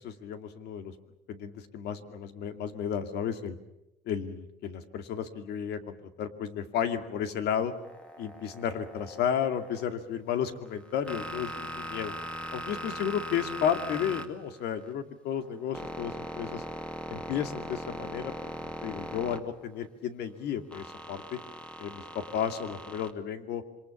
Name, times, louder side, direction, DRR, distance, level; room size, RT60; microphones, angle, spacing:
voice 1, 0.2-0.9 1.3-3.6 4.0-7.7 8.2-12.1 12.5-16.6 17.1-21.4 21.8-23.6, left 8 dB, 75° left, 8 dB, 2.4 m, -33 dB
sound 1, 7.8-9.8 10.7-14.9 15.3-19.9 20.7-23.1, equal, 5° left, 2.1 m, -40 dB
27.0 x 24.0 x 7.2 m, 0.90 s
cardioid pair, 110°, 17 cm